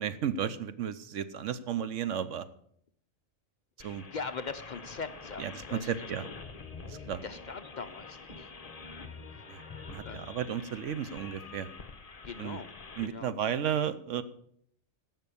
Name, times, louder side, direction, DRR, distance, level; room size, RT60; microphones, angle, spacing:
voice 1, 0.0-2.5 3.8-4.0 5.4-6.2 6.9-7.2 9.5-9.6 9.9-11.7 12.4-12.6 13.0-14.2, right 9 dB, 75° right, 13 dB, 1.1 m, -33 dB
voice 2, 3.8-5.9 7.0-8.5 9.3-9.7 10.0-10.3 12.2-12.7 13.0-13.3, left 5 dB, 55° left, 10 dB, 0.5 m, -41 dB
sound 1, 3.8-13.1, left 4 dB, 30° left, 1.0 m, -46 dB
16.5 x 5.8 x 6.9 m, 0.67 s
omnidirectional pair, 1.3 m